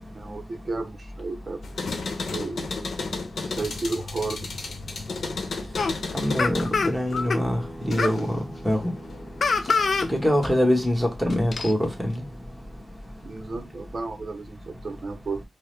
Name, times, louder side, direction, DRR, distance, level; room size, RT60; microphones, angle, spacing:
voice 1, 0.1-1.6 2.3-2.6 3.4-4.5 13.2-15.4, right 3 dB, 50° right, 0.6 m, -33 dB
sound 1, 1.6-8.3 8.7-9.5, left 3 dB, 80° left, 0.8 m, -34 dB
sound 2, 5.8-5.9 6.4-7.4 8.0-8.2 9.4-10.1 10.4-10.5 11.3-11.7, left 4 dB, 60° left, 0.3 m, -24 dB
voice 2, 6.1-8.9 10.1-12.2, equal, ahead, 1.0 m, -24 dB
sound 3, 7.1-12.9, right 1 dB, 30° left, 1.3 m, -45 dB
4.7 x 2.0 x 3.2 m
wide cardioid pair, 100°, 0 cm